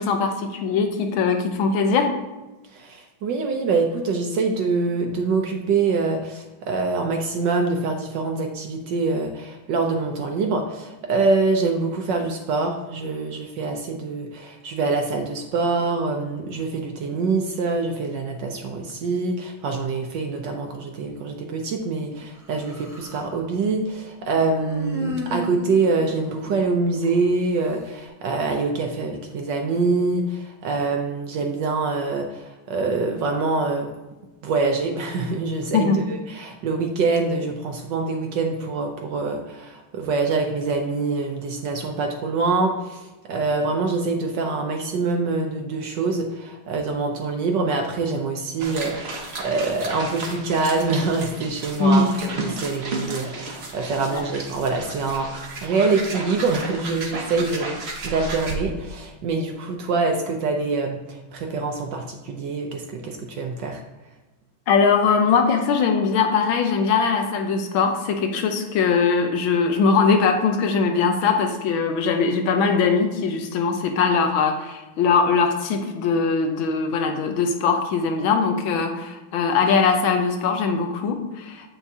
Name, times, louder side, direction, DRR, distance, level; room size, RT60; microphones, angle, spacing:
voice 1, 0.0-2.1 35.7-36.0 51.8-52.1 54.1-54.2 64.7-81.7, left 5 dB, 75° left, 5 dB, 1.5 m, -21 dB
voice 2, 2.7-33.9 34.4-57.8 58.0-63.8, right 3 dB, 70° right, 3 dB, 1.1 m, -25 dB
Human voice, 22.4-23.3 24.5-27.2, equal, ahead, 1.1 m, -33 dB
sound 1, 48.6-58.6, right 2 dB, 50° right, 0.7 m, -34 dB
8.1 x 5.9 x 2.7 m, 1.1 s
omnidirectional pair, 2.3 m